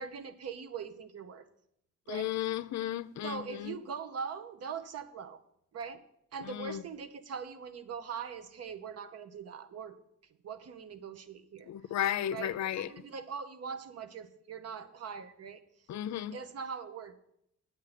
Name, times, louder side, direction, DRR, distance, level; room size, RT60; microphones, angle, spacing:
voice 1, 0.0-1.5 2.1-2.3 3.2-5.4 5.7-6.0 6.3-10.0 10.4-11.7 12.3-15.6 16.3-17.1, right 6 dB, 55° right, 1.1 m, -41 dB
voice 2, 2.1-3.8 6.4-6.8 11.7-12.9 15.9-16.4, left 11 dB, 65° left, 0.6 m, -34 dB
9.7 x 8.4 x 5.9 m
cardioid pair, 90°, 30 cm